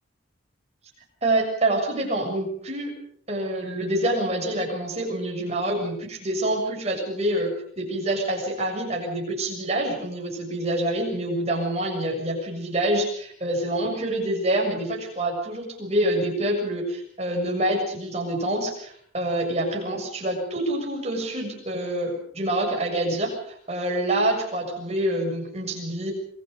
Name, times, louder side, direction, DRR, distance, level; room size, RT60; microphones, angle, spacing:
voice 1, 1.2-2.9 3.3-26.1, right 1 dB, 35° right, 1 dB, 7.0 m, -26 dB
27.0 x 22.0 x 5.2 m, 0.63 s
head